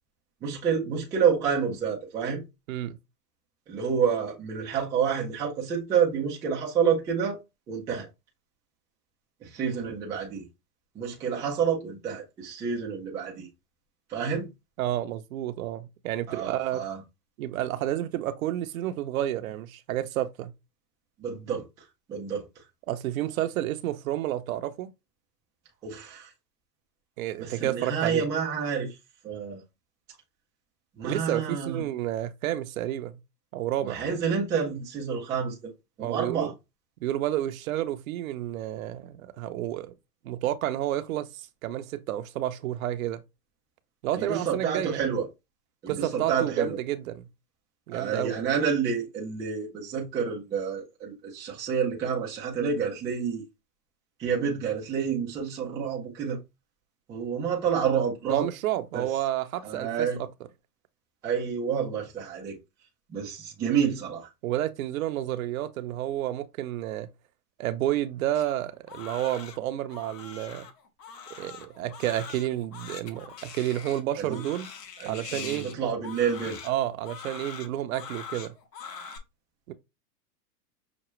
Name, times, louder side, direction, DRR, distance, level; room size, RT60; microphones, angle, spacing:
voice 1, 0.4-2.4 3.7-7.4 7.7-8.1 9.4-10.5 10.9-13.5 14.1-14.5 16.3-17.0 21.2-21.7 22.1-22.5 25.8-26.3 27.4-29.0 29.2-29.6 31.0-31.8 33.8-35.7 36.0-36.5 44.1-45.3 45.8-46.8 47.9-53.4 54.2-56.4 57.1-58.5 58.9-59.1 59.6-60.2 61.2-62.6 63.1-64.3 74.2-74.4 75.0-76.6, right 7 dB, 10° right, 0.3 m, -28 dB
voice 2, 14.8-16.8 17.4-20.5 22.9-24.9 27.2-28.3 31.0-33.2 33.5-34.0 36.0-36.5 37.0-39.9 40.2-43.2 44.0-45.0 45.9-47.3 47.9-48.4 58.3-60.1 64.4-67.1 67.6-70.7 71.4-74.7 75.1-75.7 76.6-78.5 79.7-79.8, right 13 dB, 60° right, 0.7 m, -30 dB
Crying sobbing, 68.3-79.2, left 6 dB, 85° left, 1.1 m, -43 dB
6.0 x 2.2 x 3.1 m
hypercardioid pair, 125°, 48 cm